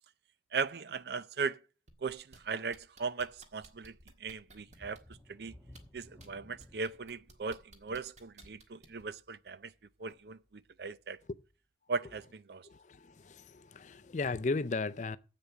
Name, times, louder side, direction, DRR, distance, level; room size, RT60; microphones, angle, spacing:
voice 1, 0.5-1.6 2.0-5.0 5.3-5.5 5.9-9.7 10.0-11.2 11.9-12.7, right 5 dB, 60° right, 0.5 m, -38 dB
sound 1, 1.9-2.4 2.7-5.2 5.7-6.3 6.6-9.0 10.1-10.2, right 2 dB, 40° right, 1.6 m, -56 dB
sound 2, 4.6-10.1 10.5-10.7 11.2-11.3, left 1 dB, 5° left, 1.3 m, -58 dB
voice 2, 12.6-15.2, left 3 dB, 40° left, 0.5 m, -36 dB
7.6 x 6.9 x 8.1 m
head